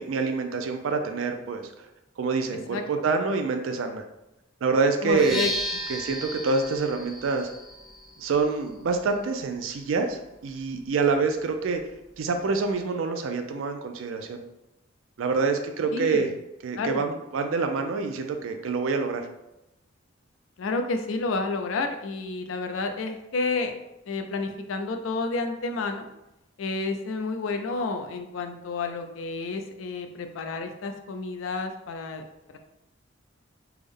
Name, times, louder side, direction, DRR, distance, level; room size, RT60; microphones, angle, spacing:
voice 1, 0.0-1.9 2.2-4.0 4.6-5.4 5.9-7.5 8.2-11.8 12.2-14.4 15.2-16.3 16.6-19.3, right 4 dB, 90° right, 5 dB, 0.4 m, -26 dB
voice 2, 5.0-5.5 15.9-16.3 16.7-17.1 20.6-23.7 24.1-26.1 26.6-32.2, left 3 dB, 85° left, 6 dB, 0.4 m, -30 dB
sound 1, 5.1-12.8, equal, ahead, 0.3 m, -38 dB
3.4 x 2.1 x 3.5 m, 0.91 s
head